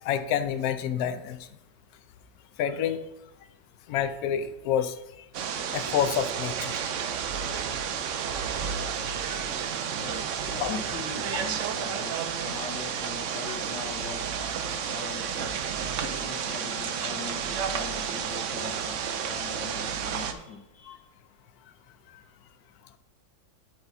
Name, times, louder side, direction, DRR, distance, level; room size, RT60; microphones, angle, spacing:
voice 1, 0.0-1.4 2.6-3.0 3.9-5.2 5.7-6.7 10.6-10.8 20.3-20.4 20.9-21.0, left 9 dB, 70° left, 9 dB, 1.0 m, -28 dB
sound 1, 5.3-20.3, right 7 dB, 65° right, 0.7 m, -31 dB
voice 2, 10.0-15.6 16.0-21.0, left 5 dB, 90° left, 0 dB, 1.6 m, -41 dB
10.0 x 4.5 x 4.1 m, 0.92 s
omnidirectional pair, 1.8 m